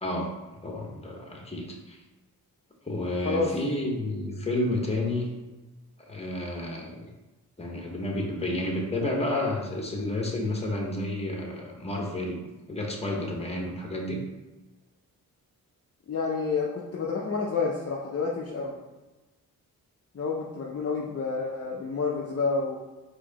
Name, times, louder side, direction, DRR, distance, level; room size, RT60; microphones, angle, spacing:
voice 1, 0.0-0.3 0.6-2.0 2.8-5.3 6.1-7.1 7.6-12.4 12.7-14.2, left 1 dB, 15° left, 0 dB, 1.2 m, -30 dB
voice 2, 16.1-18.8 20.1-22.8, left 4 dB, 40° left, -2 dB, 0.6 m, -29 dB
4.5 x 2.8 x 4.1 m, 1.1 s
cardioid pair, 80°, 37 cm